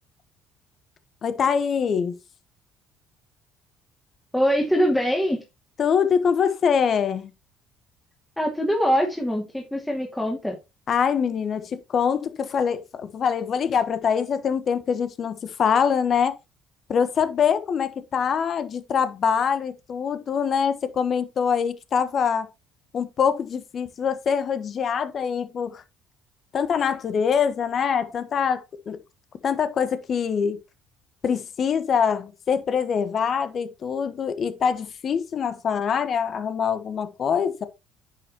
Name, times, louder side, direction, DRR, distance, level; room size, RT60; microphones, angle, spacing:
voice 1, 1.2-2.1 5.8-7.3 10.9-16.4 16.9-22.5 22.9-25.8 26.5-29.0 29.4-30.6 31.2-37.6, left 7 dB, 50° left, 1.2 m, -24 dB
voice 2, 4.3-5.4 8.4-10.6, equal, 5° left, 2.4 m, -23 dB
9.9 x 6.8 x 2.9 m
hypercardioid pair, 60°, 0 cm